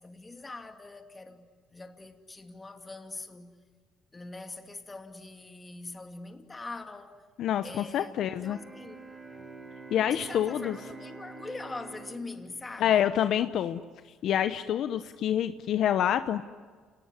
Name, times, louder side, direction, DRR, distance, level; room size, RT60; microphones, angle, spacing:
voice 1, 0.0-3.6 4.1-7.2 7.6-9.1 10.1-13.1, left 3 dB, 20° left, 2.8 m, -43 dB
voice 2, 7.4-8.6 9.9-10.8 12.8-13.8 14.2-16.4, left 10 dB, 65° left, 0.8 m, -27 dB
Bowed string instrument, 8.3-14.3, right 4 dB, 15° right, 4.3 m, -48 dB
29.5 x 19.5 x 9.9 m
supercardioid pair, 75°, 0 cm